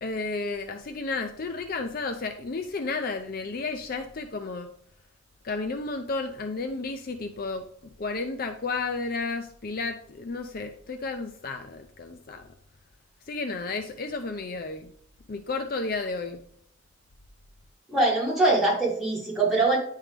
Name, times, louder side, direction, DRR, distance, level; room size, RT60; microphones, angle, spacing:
voice 1, 0.0-4.7 5.4-7.7 8.0-12.5 13.3-14.9 15.3-16.5, left 3 dB, 50° left, 6 dB, 0.5 m, -32 dB
voice 2, 17.9-19.8, right 2 dB, ahead, -8 dB, 3.1 m, -23 dB
10.0 x 3.7 x 3.3 m, 0.65 s
head